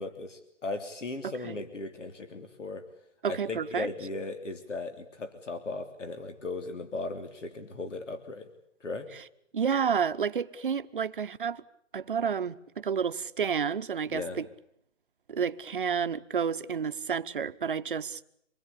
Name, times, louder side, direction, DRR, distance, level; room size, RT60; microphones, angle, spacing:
voice 1, 0.0-2.8 3.3-8.5 8.8-9.1 14.1-14.4, left 3 dB, 80° left, 3.3 m, -37 dB
voice 2, 1.2-1.6 3.2-3.9 9.5-11.6 11.9-14.5 15.3-18.2, right 7 dB, 45° right, 0.9 m, -30 dB
26.5 x 20.5 x 8.5 m
hypercardioid pair, 175°, 36 cm